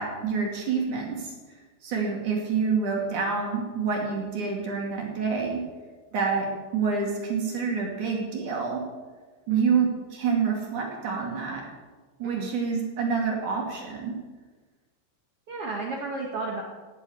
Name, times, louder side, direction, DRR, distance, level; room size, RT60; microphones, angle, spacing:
voice 1, 0.0-1.3 1.8-5.6 6.1-6.5 6.7-8.8 9.5-11.6 12.2-14.1, right 5 dB, 45° right, -1 dB, 3.7 m, -27 dB
voice 2, 9.5-9.8 12.2-12.5 15.5-16.6, right 3 dB, 65° right, 0 dB, 1.4 m, -33 dB
17.0 x 7.2 x 8.1 m, 1.3 s
omnidirectional pair, 5.1 m